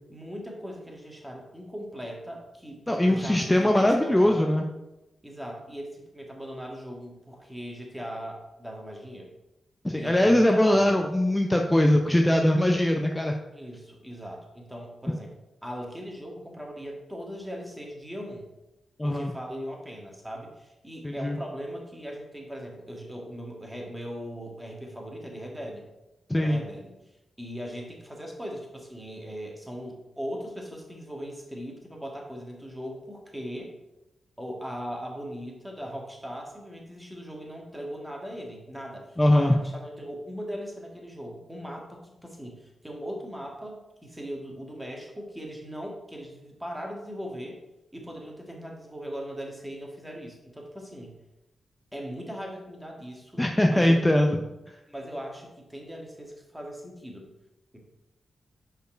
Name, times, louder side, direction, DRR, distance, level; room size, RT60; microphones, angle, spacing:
voice 1, 0.1-4.6 5.2-9.3 10.0-11.0 13.5-15.3 15.6-18.4 19.0-25.9 26.4-27.0 27.4-33.7 34.4-47.6 47.9-51.1 51.9-54.0 54.9-57.3, equal, 10° right, 0 dB, 1.8 m, -39 dB
voice 2, 2.9-4.6 9.8-13.3 19.0-19.3 21.0-21.4 26.3-26.6 39.2-39.6 53.4-54.4 54.7-54.8, left 1 dB, 15° left, 3 dB, 0.6 m, -21 dB
5.1 x 4.5 x 4.5 m, 0.95 s
supercardioid pair, 45°, 0 cm